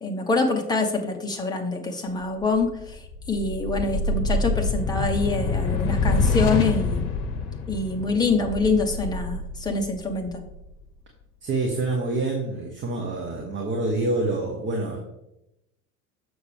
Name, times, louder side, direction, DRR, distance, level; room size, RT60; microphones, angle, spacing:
voice 1, 0.0-7.1 7.7-10.4, left 3 dB, 10° left, 2 dB, 1.0 m, -25 dB
sound 1, 2.4-10.8, left 3 dB, 50° left, 1.0 m, -27 dB
voice 2, 11.4-15.0, right 2 dB, 25° right, 2 dB, 1.0 m, -27 dB
6.4 x 6.1 x 3.5 m, 0.87 s
figure-of-eight pair, 75°, 46 cm